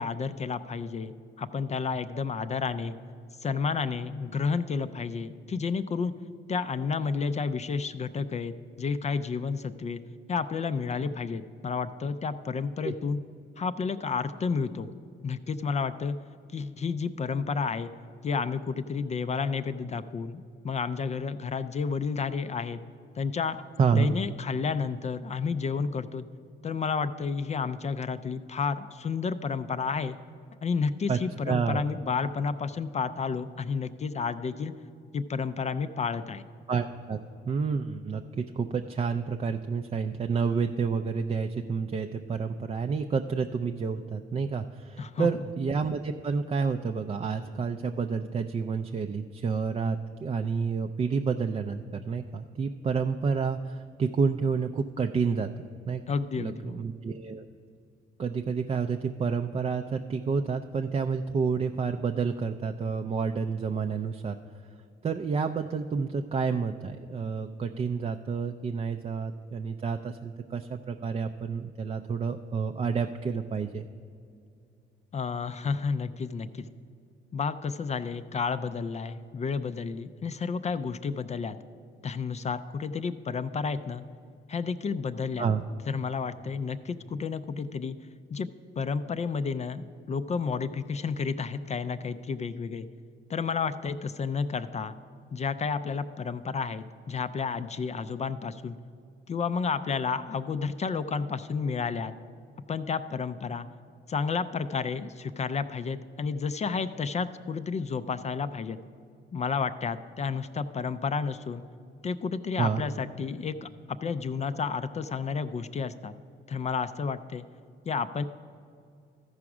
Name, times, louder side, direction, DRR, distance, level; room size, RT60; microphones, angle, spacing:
voice 1, 0.0-3.0 3.4-6.1 6.5-10.0 10.3-13.2 13.6-14.9 15.2-16.2 16.5-17.9 18.2-22.8 23.2-23.6 24.0-26.3 26.6-30.2 30.6-34.7 35.1-36.4 45.0-45.3 56.1-56.8 75.1-76.6 77.3-81.6 82.0-84.0 84.5-85.5 85.9-88.0 88.3-88.5 88.8-92.9 93.3-94.9 95.3-98.8 99.3-102.1 102.7-103.7 104.1-108.8 109.3-111.6 112.0-116.1 116.5-117.5 117.9-118.2, left 5 dB, 35° left, 12 dB, 0.4 m, -31 dB
voice 2, 23.8-24.1 31.1-31.2 31.5-31.9 36.7-37.2 37.5-55.5 55.9-56.0 56.4-57.5 58.2-64.4 65.0-73.8 85.4-85.6 112.6-112.8, right 5 dB, 30° right, 6 dB, 0.4 m, -29 dB
14.0 x 4.8 x 6.0 m, 2.4 s
cardioid pair, 90°, 20 cm